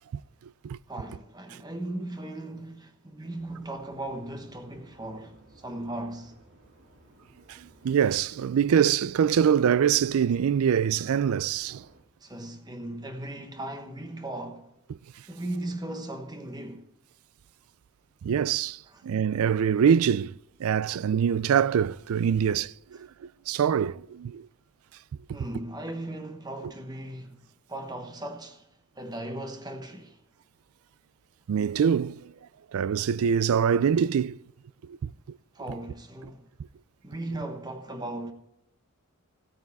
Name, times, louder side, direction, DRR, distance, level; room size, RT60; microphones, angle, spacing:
voice 1, 0.9-6.4 12.2-14.7 15.3-16.8 18.9-19.0 25.3-28.7 29.0-30.2 35.5-36.5 37.0-38.3, right 1 dB, 20° right, 1.1 m, -37 dB
sound 1, 3.3-12.0, right 1 dB, 60° right, 2.5 m, -57 dB
voice 2, 7.5-11.8 18.2-22.7 23.0-23.1 23.5-24.5 31.5-32.3 32.7-34.4 34.9-35.1, right 8 dB, 80° right, 0.3 m, -24 dB
16.5 x 9.1 x 3.6 m
head